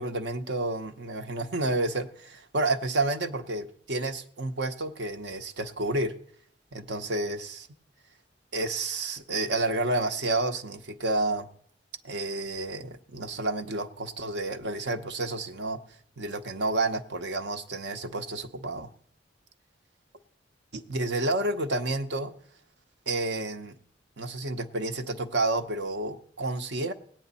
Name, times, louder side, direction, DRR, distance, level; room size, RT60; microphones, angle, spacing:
voice 1, 0.0-6.1 6.7-7.7 8.5-11.5 12.0-15.8 16.2-18.9 20.7-22.3 23.1-23.8 24.2-26.9, right 2 dB, 65° right, 8 dB, 0.8 m, -30 dB
17.5 x 9.1 x 4.1 m, 0.63 s
head